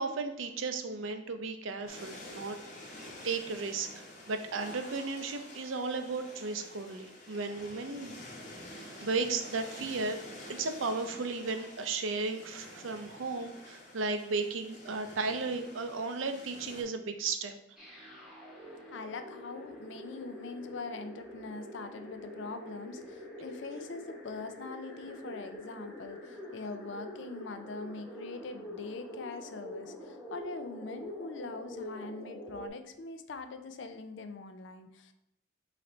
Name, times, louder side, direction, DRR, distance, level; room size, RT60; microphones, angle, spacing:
voice 1, 0.0-2.6 2.9-8.2 8.7-10.2 10.5-17.6, right 4 dB, 85° right, 7 dB, 0.6 m, -35 dB
sound 1, 1.9-16.8, left 1 dB, 40° left, 1.0 m, -49 dB
sound 2, 17.8-32.7, left 1 dB, 5° right, 0.9 m, -45 dB
voice 2, 18.9-35.1, left 3 dB, 70° left, 9 dB, 0.5 m, -43 dB
4.1 x 3.3 x 3.9 m, 0.85 s
head